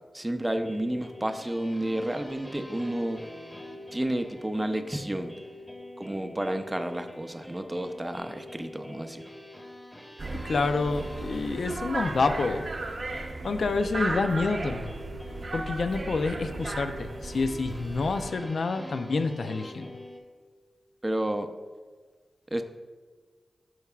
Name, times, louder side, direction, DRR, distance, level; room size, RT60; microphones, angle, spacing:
voice 1, 0.1-3.2 3.9-5.3 6.0-9.3 21.0-21.5 22.5-22.6, right 1 dB, 15° right, 7 dB, 0.6 m, -31 dB
sound 1, 0.5-20.2, left 1 dB, 10° left, 1.2 m, -45 dB
sound 2, 10.2-18.3, right 2 dB, 50° right, 0.8 m, -36 dB
voice 2, 10.4-12.7 13.4-14.9 15.5-19.9, left 3 dB, 65° left, 8 dB, 0.5 m, -28 dB
12.0 x 4.7 x 2.4 m, 1.5 s
cardioid pair, 60°, 0 cm